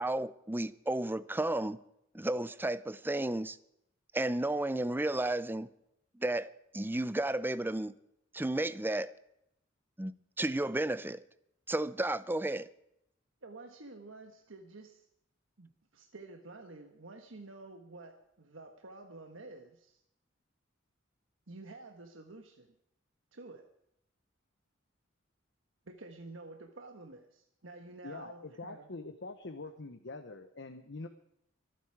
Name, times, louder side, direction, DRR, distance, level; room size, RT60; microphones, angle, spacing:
voice 1, 0.0-1.8 2.1-3.6 4.1-5.7 6.2-7.9 8.3-9.1 10.0-11.2 11.7-12.7, right 1 dB, 10° right, 0.5 m, -33 dB
voice 2, 13.4-15.1 15.6-20.0 21.5-22.7 23.3-23.6 25.8-28.9, right 2 dB, 70° right, 1.4 m, -50 dB
voice 3, 28.0-31.1, left 3 dB, 60° left, 1.0 m, -44 dB
24.5 x 9.4 x 4.8 m
head